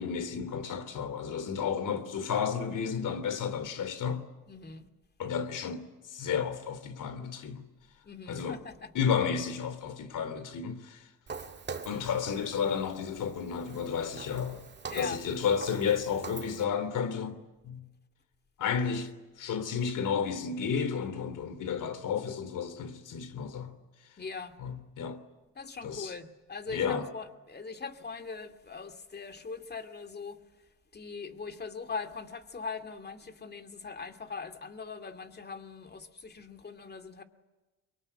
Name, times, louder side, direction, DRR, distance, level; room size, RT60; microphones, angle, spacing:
voice 1, 0.0-4.2 5.2-7.6 8.3-8.6 8.9-11.1 11.8-14.6 14.9-17.8 18.6-19.1 19.4-23.7 24.6-25.2 25.8-26.1 26.7-27.1, left 7 dB, 60° left, 3.3 m, -32 dB
voice 2, 4.5-4.9 8.0-8.9 14.9-15.2 24.2-24.6 25.6-30.4 30.9-37.2, left 4 dB, 30° left, 2.5 m, -41 dB
Walk footsteps, 11.3-16.6, right 5 dB, 30° right, 2.0 m, -44 dB
23.5 x 23.0 x 9.8 m
supercardioid pair, 85°, 35 cm